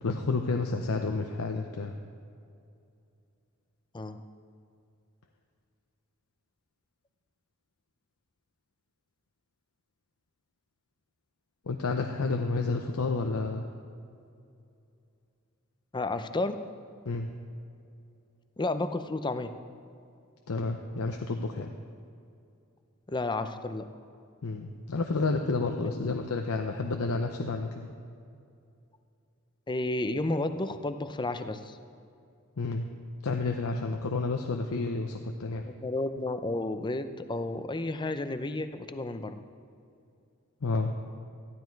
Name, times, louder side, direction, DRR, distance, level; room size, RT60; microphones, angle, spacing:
voice 1, 0.0-1.9 11.7-13.6 17.1-17.3 20.5-21.7 24.4-27.9 32.6-32.9 33.2-35.6 40.6-40.9, left 3 dB, 80° left, 4 dB, 0.7 m, -30 dB
voice 2, 15.9-16.6 18.6-19.5 23.1-23.9 25.8-26.1 29.7-31.8 35.8-39.4, left 2 dB, 20° left, 10 dB, 0.6 m, -32 dB
14.0 x 12.0 x 4.6 m, 2.5 s
head